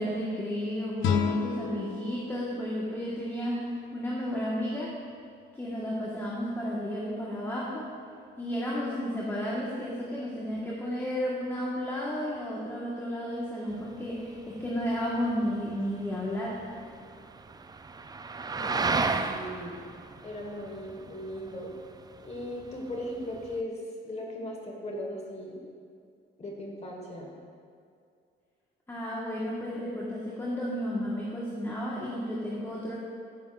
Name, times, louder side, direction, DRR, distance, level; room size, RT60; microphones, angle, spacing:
voice 1, 0.0-5.0 5.5-7.9 8.4-16.6 28.9-33.0, equal, 10° left, -5 dB, 1.4 m, -32 dB
sound 1, 1.0-4.0, left 6 dB, 80° left, 0.7 m, -32 dB
sound 2, 13.7-23.6, right 4 dB, 20° right, 0.4 m, -35 dB
voice 2, 18.6-19.8 20.2-21.7 22.2-25.6 26.4-27.3, left 1 dB, 35° left, 0 dB, 1.5 m, -38 dB
14.5 x 7.0 x 2.5 m, 2.3 s
cardioid pair, 90°, 20 cm